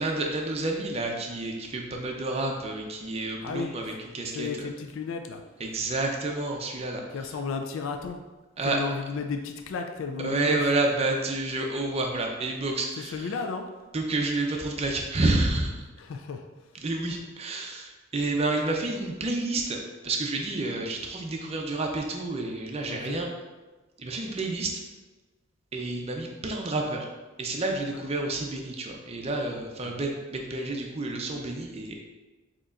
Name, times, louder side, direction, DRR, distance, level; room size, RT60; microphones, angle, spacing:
voice 1, 0.0-4.5 5.6-7.0 8.6-8.8 10.2-13.1 13.9-15.8 16.8-19.8 20.0-23.3 24.0-24.7 25.7-27.1 27.4-31.9, right 2 dB, 30° right, 1 dB, 0.5 m, -29 dB
voice 2, 3.4-4.0 4.3-5.4 7.1-8.2 8.6-10.7 13.0-13.6 16.0-16.8 22.9-23.2 27.9-28.0 29.8-30.0, left 5 dB, 65° left, 5 dB, 0.3 m, -34 dB
6.4 x 2.9 x 2.4 m, 1.2 s
head